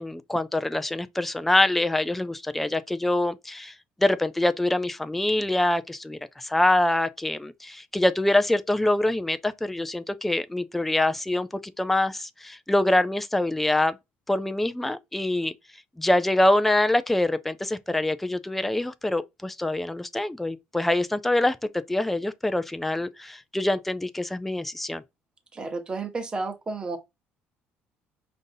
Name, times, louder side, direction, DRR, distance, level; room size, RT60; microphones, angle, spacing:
voice 1, 0.0-3.7 4.0-11.5 11.8-14.0 14.3-15.5 16.0-21.6 21.9-25.0, left 1 dB, 5° left, 0.3 m, -25 dB
voice 2, 25.5-27.0, right 3 dB, 20° right, 0.9 m, -31 dB
5.1 x 2.6 x 2.6 m
cardioid pair, 140°, 4 cm